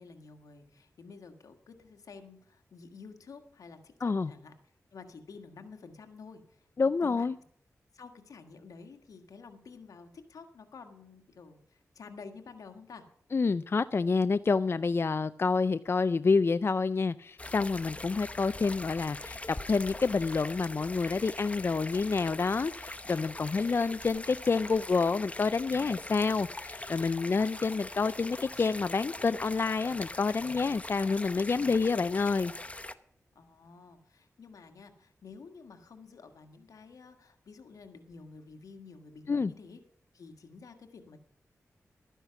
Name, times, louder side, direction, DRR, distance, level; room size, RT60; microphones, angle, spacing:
voice 1, 0.0-4.5 4.9-6.7 7.0-7.3 7.9-13.1 33.4-39.8 40.1-41.2, left 4 dB, 85° left, 6 dB, 1.6 m, -50 dB
voice 2, 6.8-7.4 13.3-32.5 39.3-39.5, left 4 dB, 45° left, 14 dB, 0.4 m, -28 dB
sound 1, 17.4-32.9, left 2 dB, 25° left, 0.8 m, -42 dB
13.0 x 10.0 x 5.8 m, 0.66 s
cardioid pair, 60°, 6 cm